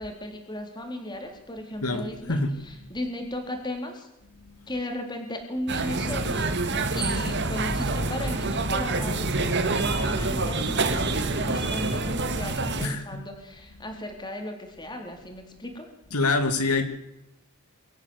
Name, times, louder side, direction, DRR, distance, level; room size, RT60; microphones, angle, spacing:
voice 1, 0.0-4.1 4.7-6.6 6.9-15.9, left 1 dB, 20° left, 3 dB, 4.1 m, -36 dB
voice 2, 1.8-2.5 12.8-13.2 16.1-16.8, left 3 dB, 90° left, 7 dB, 2.6 m, -25 dB
sound 1, 5.7-12.9, right 3 dB, 50° right, 2.0 m, -26 dB
24.5 x 13.5 x 8.2 m, 0.89 s
head